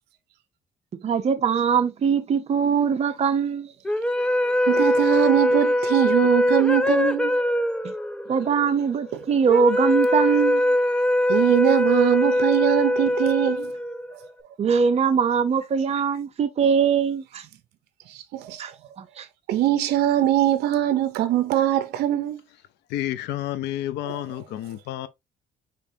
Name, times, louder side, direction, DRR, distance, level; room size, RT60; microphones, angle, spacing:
voice 1, 1.0-3.7 7.8-7.9 8.3-10.7 14.6-17.4 18.6-18.7 19.0-19.3, right 6 dB, 40° right, 0.8 m, -22 dB
sound 1, 3.8-14.3, left 1 dB, 5° left, 0.4 m, -22 dB
voice 2, 4.7-7.4 11.3-13.7 18.3-18.6 19.5-22.4 24.0-24.2, right 13 dB, 75° right, 0.6 m, -22 dB
voice 3, 22.9-25.1, left 13 dB, 80° left, 0.6 m, -30 dB
5.2 x 3.3 x 2.7 m
cardioid pair, 110°, 17 cm